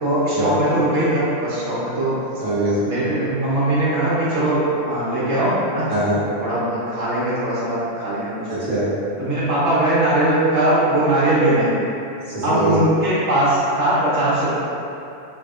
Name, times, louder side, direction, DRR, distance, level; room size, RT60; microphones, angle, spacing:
voice 1, 0.0-2.2 2.9-5.9 6.4-8.5 9.2-11.7 12.4-14.5, right 1 dB, 65° right, -10 dB, 1.1 m, -20 dB
voice 2, 2.4-3.0 5.9-6.2 8.5-8.9 12.3-12.8, right 1 dB, 30° right, -11 dB, 1.0 m, -22 dB
3.1 x 2.7 x 3.6 m, 2.7 s
omnidirectional pair, 1.3 m